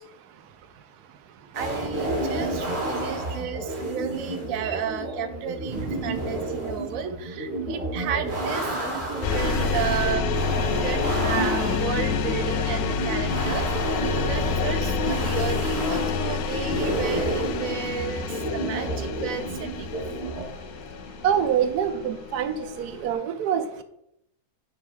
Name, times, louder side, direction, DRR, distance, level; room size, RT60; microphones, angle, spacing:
sound 1, 1.5-20.4, right 1 dB, 40° right, 2.1 m, -30 dB
voice 1, 1.5-14.0 14.2-19.9, right 8 dB, 65° right, 8 dB, 1.1 m, -33 dB
sound 2, 9.2-23.1, left 5 dB, 75° left, 1.1 m, -28 dB
voice 2, 21.2-23.8, right 8 dB, 85° right, 9 dB, 1.2 m, -25 dB
9.5 x 5.5 x 3.4 m, 0.75 s
omnidirectional pair, 1.6 m